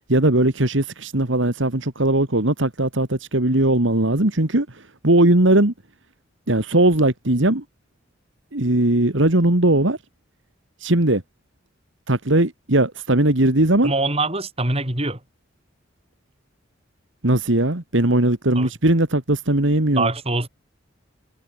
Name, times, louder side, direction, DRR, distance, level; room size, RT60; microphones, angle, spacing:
voice 1, 0.1-5.7 6.5-7.6 8.5-10.0 10.8-11.2 12.1-13.9 17.2-20.1, right 1 dB, 70° right, 2.3 m, -19 dB
voice 2, 13.8-15.2 18.5-18.7 19.9-20.5, right 2 dB, 30° right, 5.5 m, -23 dB
head